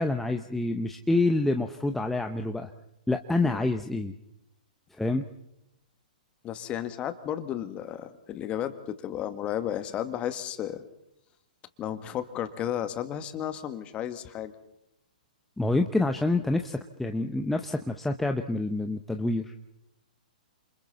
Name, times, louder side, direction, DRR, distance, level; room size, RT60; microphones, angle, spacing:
voice 1, 0.0-2.7 3.1-4.1 5.0-5.2 15.6-19.5, left 2 dB, 5° left, 5 dB, 0.9 m, -27 dB
voice 2, 6.4-10.8 11.8-14.5, left 10 dB, 25° left, 9 dB, 1.9 m, -33 dB
29.0 x 27.5 x 4.2 m, 0.85 s
figure-of-eight pair, 110°, 5 cm